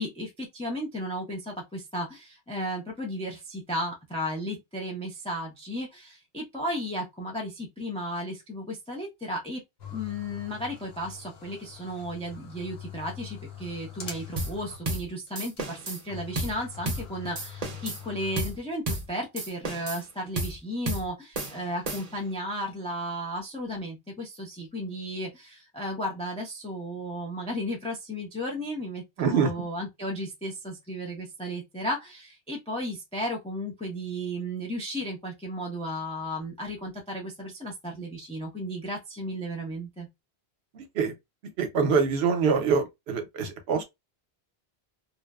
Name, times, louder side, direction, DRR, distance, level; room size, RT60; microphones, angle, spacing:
voice 1, 0.0-9.6 9.9-40.1, equal, 10° left, 0.3 m, -34 dB
sound 1, 9.8-15.0 15.3-15.4 15.6-15.7 16.1-18.9, left 8 dB, 70° left, 0.9 m, -43 dB
sound 2, 14.4-14.6 14.8-15.1 15.3-16.0 16.3-16.6 16.8-17.1 17.3-18.0 18.4-18.6 18.9-19.1 19.4-20.0 20.4-20.6 20.9-21.1 21.3-22.3, right 2 dB, 40° right, 0.7 m, -32 dB
voice 2, 29.2-29.6 40.7-41.1 41.6-43.8, right 5 dB, 75° right, 0.9 m, -25 dB
2.7 x 2.0 x 2.2 m
omnidirectional pair, 1.1 m